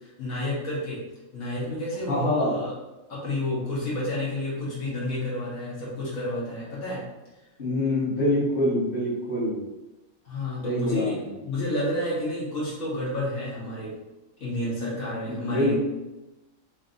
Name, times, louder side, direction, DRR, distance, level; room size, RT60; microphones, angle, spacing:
voice 1, 0.0-1.0 1.3-2.7 3.1-7.0 10.2-11.2 11.4-13.9 14.4-15.7, left 1 dB, 80° left, -7 dB, 1.8 m, -30 dB
voice 2, 2.1-2.6 7.6-9.6 10.6-11.3 15.2-15.7, left 1 dB, 40° left, -8 dB, 1.5 m, -25 dB
4.9 x 2.8 x 2.6 m, 1.0 s
omnidirectional pair, 1.4 m